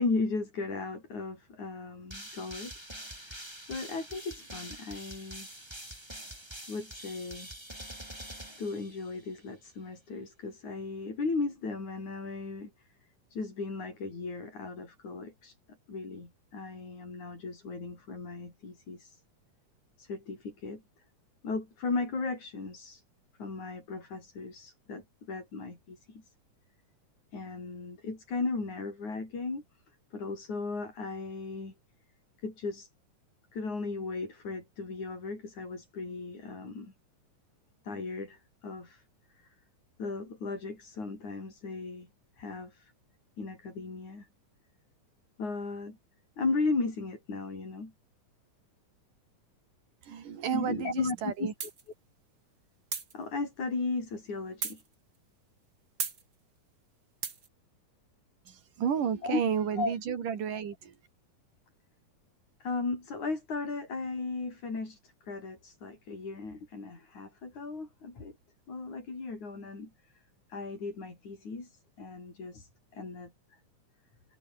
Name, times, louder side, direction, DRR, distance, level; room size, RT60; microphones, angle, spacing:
voice 1, 0.0-5.5 6.7-7.5 8.6-12.7 13.3-15.6 15.9-19.2 20.0-20.8 21.4-23.0 23.4-26.3 27.3-29.6 30.1-31.7 32.4-32.9 33.5-36.9 37.8-39.0 39.3-39.5 40.0-42.1 42.4-42.9 43.4-44.3 45.4-46.0 46.4-47.9 50.5-51.5 53.1-54.8 59.2-59.4 59.8-59.9 62.6-68.4 68.7-70.1 70.5-73.3, left 3 dB, 65° left, 8.6 m, -36 dB
sound 1, 2.1-9.4, right 1 dB, 5° right, 5.8 m, -45 dB
voice 2, 50.0-51.5 58.5-61.0, right 7 dB, 80° right, 4.5 m, -32 dB
sound 2, 51.6-51.8 52.9-53.1 54.6-54.8 56.0-56.2 57.2-57.5, right 5 dB, 35° right, 2.6 m, -34 dB
omnidirectional pair, 3.7 m